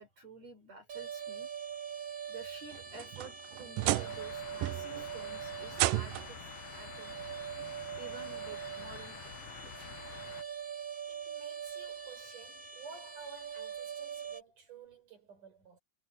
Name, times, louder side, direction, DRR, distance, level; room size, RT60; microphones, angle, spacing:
voice 1, 0.0-1.5 2.3-6.4 6.7-7.2 8.0-10.0, right 4 dB, 50° right, 6.3 m, -51 dB
sound 1, 0.9-14.4, right 7 dB, 25° right, 2.8 m, -43 dB
sound 2, 2.7-4.3 4.6-5.1 5.7-6.4 7.6-7.7 8.3-8.4 10.0-10.1, right 17 dB, 90° right, 2.3 m, -33 dB
sound 3, 3.8-10.4, left 11 dB, 70° left, 1.5 m, -49 dB
voice 2, 11.1-15.8, right 6 dB, 70° right, 7.1 m, -52 dB
omnidirectional pair, 3.8 m